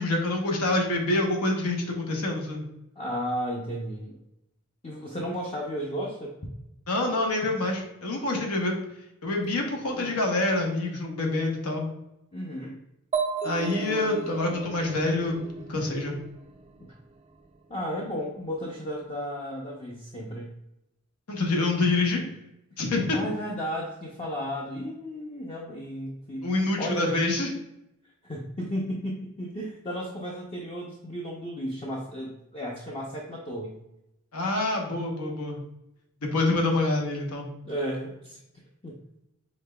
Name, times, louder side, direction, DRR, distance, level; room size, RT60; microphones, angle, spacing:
voice 1, 0.0-2.6 6.9-8.7 9.2-11.9 13.4-15.4 15.7-16.2 21.3-22.2 22.8-23.2 26.4-27.5 34.3-35.6 36.2-37.5, left 2 dB, 90° left, 1 dB, 1.0 m, -26 dB
voice 2, 3.0-4.2 4.8-6.3 9.9-10.3 12.3-12.8 16.8-16.9 17.7-20.5 23.1-26.5 26.8-27.3 28.2-33.8 37.6-38.4 38.8-39.0, equal, 25° left, -3 dB, 0.5 m, -34 dB
sound 1, 13.1-16.8, right 4 dB, 30° right, 0.3 m, -34 dB
5.3 x 3.6 x 2.2 m, 0.87 s
head